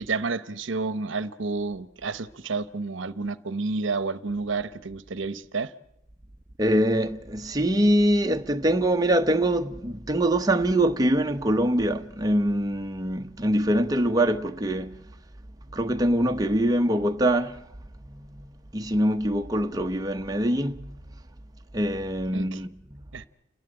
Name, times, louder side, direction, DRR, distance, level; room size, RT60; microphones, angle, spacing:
voice 1, 0.0-5.7 22.3-22.6 23.1-23.3, right 4 dB, 65° right, 0.9 m, -30 dB
voice 2, 6.6-15.0 15.7-17.6 18.1-21.0 21.7-23.0, right 1 dB, 20° right, 0.8 m, -24 dB
29.5 x 11.5 x 9.9 m
head